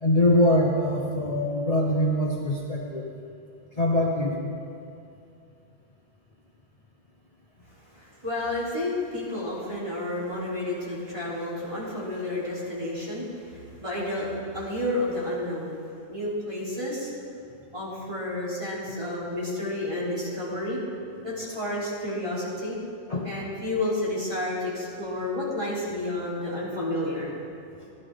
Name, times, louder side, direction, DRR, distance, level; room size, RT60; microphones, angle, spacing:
voice 1, 0.0-3.0 3.8-4.4 23.1-23.3, left 1 dB, 35° left, -3 dB, 1.1 m, -23 dB
voice 2, 8.2-13.3 13.8-17.1 17.7-20.8 21.2-22.8 23.2-27.3 27.9-28.0, left 1 dB, 30° right, -8 dB, 3.5 m, -30 dB
16.0 x 12.0 x 3.6 m, 2.5 s
omnidirectional pair, 1.1 m